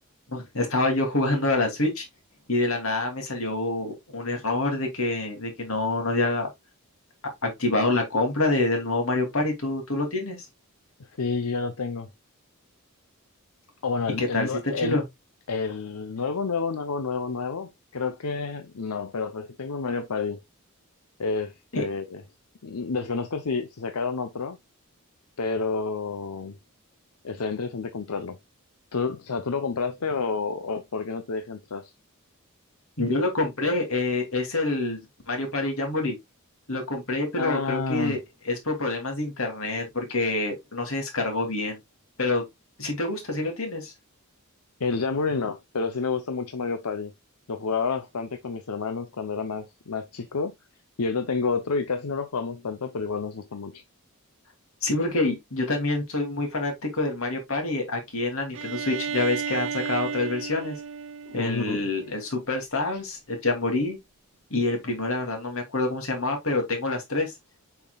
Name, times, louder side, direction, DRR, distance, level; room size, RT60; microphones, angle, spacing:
voice 1, 0.3-2.1 2.5-6.5 7.4-10.4 14.2-15.0 21.7-21.9 33.0-35.0 35.3-36.2 36.7-38.2 38.4-41.8 42.2-42.4 42.8-43.9 54.8-60.8 61.3-64.0 64.5-67.3, left 2 dB, 65° left, 2.7 m, -26 dB
voice 2, 11.2-12.1 13.8-15.0 15.5-20.4 21.2-22.2 22.6-24.6 25.4-26.5 27.2-28.4 28.9-31.9 37.4-38.2 44.8-47.1 47.5-50.5 51.0-53.8 61.3-61.8, left 4 dB, 85° left, 0.7 m, -29 dB
Bowed string instrument, 58.5-62.3, right 7 dB, 60° right, 0.7 m, -33 dB
7.0 x 5.9 x 2.3 m
head